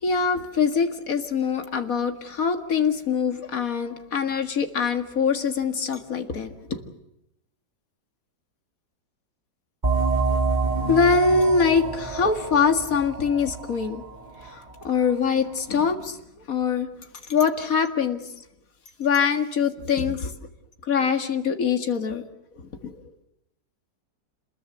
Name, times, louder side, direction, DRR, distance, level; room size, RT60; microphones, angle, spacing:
voice 1, 0.0-6.8 10.6-14.0 14.4-16.2 16.5-16.9 17.3-18.2 19.0-20.3 20.8-22.2 22.6-23.0, left 5 dB, 50° left, 7 dB, 2.3 m, -23 dB
sound 1, 9.8-15.1, right 3 dB, 25° right, 2.2 m, -27 dB
28.0 x 20.5 x 8.0 m, 0.84 s
omnidirectional pair, 1.9 m